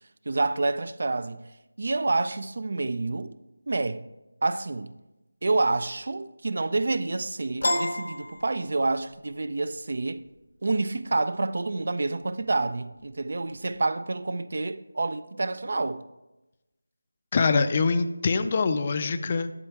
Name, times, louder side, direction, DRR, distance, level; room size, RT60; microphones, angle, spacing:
voice 1, 0.3-1.4 1.8-3.3 3.7-4.0 4.4-4.9 5.4-10.2 10.6-16.0, right 3 dB, 55° right, 0.4 m, -28 dB
Piano, 7.6-9.2, left 1 dB, 75° left, 1.2 m, -29 dB
voice 2, 17.3-19.5, left 4 dB, 30° left, 0.4 m, -24 dB
11.0 x 4.4 x 4.6 m
figure-of-eight pair, 170°, 0 cm